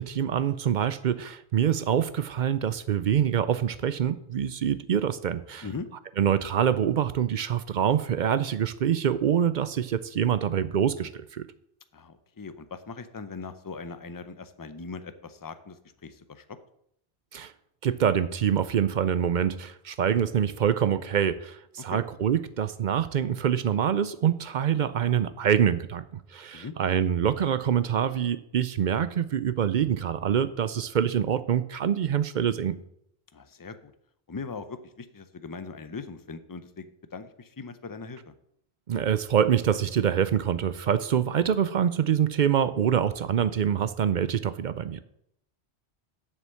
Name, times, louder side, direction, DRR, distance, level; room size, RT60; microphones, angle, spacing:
voice 1, 0.0-5.7 6.2-11.5 17.3-17.5 17.8-32.8 38.9-45.0, right 9 dB, 55° right, 14 dB, 0.6 m, -25 dB
voice 2, 11.9-16.4 21.9-22.0 26.5-26.7 33.3-33.9 34.3-38.3, left 4 dB, 25° left, 11 dB, 0.5 m, -40 dB
7.6 x 6.5 x 7.6 m, 0.74 s
omnidirectional pair, 1.1 m